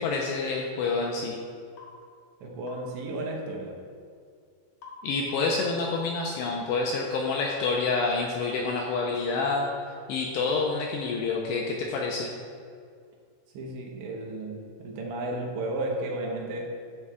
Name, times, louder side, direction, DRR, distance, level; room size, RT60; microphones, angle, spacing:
voice 1, 0.0-1.4 5.0-9.7 10.1-12.3, left 4 dB, 80° left, -1 dB, 2.5 m, -28 dB
sound 1, 1.8-2.0 2.7-2.9 4.8-5.0 5.3-5.6, left 4 dB, 60° left, 2.2 m, -46 dB
voice 2, 2.4-3.8 13.5-16.8, right 2 dB, 70° right, -1 dB, 3.2 m, -33 dB
15.0 x 9.7 x 2.4 m, 2.2 s
omnidirectional pair, 5.6 m